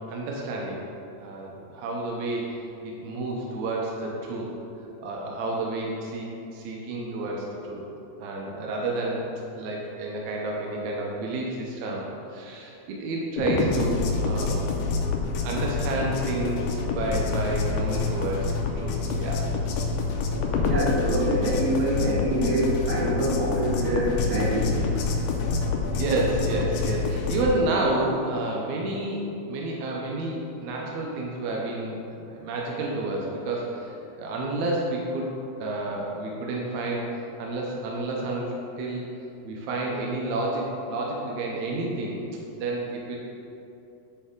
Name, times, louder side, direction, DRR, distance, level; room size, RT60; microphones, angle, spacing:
voice 1, 0.1-0.8 1.2-4.5 5.0-7.8 8.2-9.2 9.5-14.7 15.4-19.4 25.9-32.0 32.3-35.3 35.6-37.1 37.4-39.1 39.4-42.2 42.6-43.2, right 2 dB, 85° right, -2 dB, 1.6 m, -30 dB
sound 1, 13.4-27.5, left 4 dB, 80° left, 2.0 m, -27 dB
voice 2, 20.7-24.7, right 1 dB, 60° right, -7 dB, 2.4 m, -25 dB
9.7 x 3.4 x 3.7 m, 2.8 s
omnidirectional pair, 4.2 m